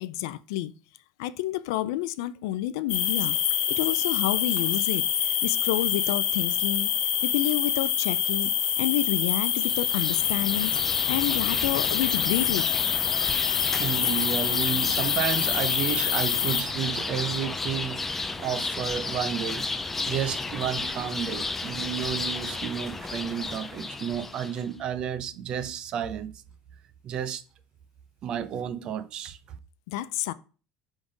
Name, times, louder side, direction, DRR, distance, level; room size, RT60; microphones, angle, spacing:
voice 1, 0.0-0.7 1.2-3.4 3.7-5.0 5.4-6.9 7.2-8.5 8.8-10.7 11.1-12.7 29.9-30.3, left 14 dB, 85° left, 0.4 m, -29 dB
sound 1, 2.9-16.6, left 9 dB, 50° left, 0.9 m, -26 dB
sound 2, 9.5-24.7, left 3 dB, 10° left, 0.4 m, -32 dB
voice 2, 13.8-18.1 18.4-19.6 20.1-26.3 27.0-27.4 28.2-29.4, right 9 dB, 40° right, 0.6 m, -31 dB
5.3 x 3.5 x 5.2 m
cardioid pair, 155°, 2 cm